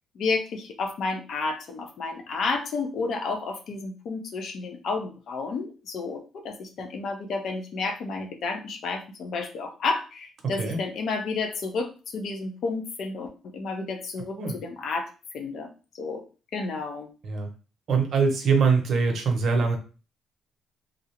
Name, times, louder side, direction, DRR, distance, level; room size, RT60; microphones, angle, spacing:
voice 1, 0.1-15.1 15.3-15.7 16.0-16.2 16.5-17.1, left 4 dB, 70° left, 4 dB, 0.5 m, -31 dB
voice 2, 17.9-19.8, right 5 dB, 60° right, 3 dB, 0.7 m, -23 dB
2.4 x 2.0 x 2.8 m, 0.34 s
cardioid pair, 90°, 0 cm